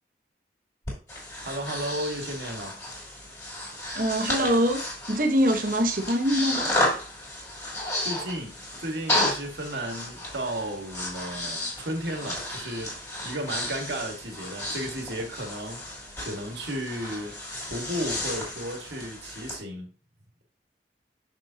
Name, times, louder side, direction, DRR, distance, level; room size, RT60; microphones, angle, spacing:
Breathing, 0.9-19.6, left 1 dB, 15° left, 3.2 m, -33 dB
voice 1, 1.4-2.8 8.0-13.0 13.2-15.9 16.2-17.4 17.7-19.9, right 1 dB, 75° right, 1.7 m, -34 dB
voice 2, 3.9-4.8 5.1-6.7, equal, 50° right, 1.1 m, -23 dB
6.4 x 6.3 x 2.8 m
head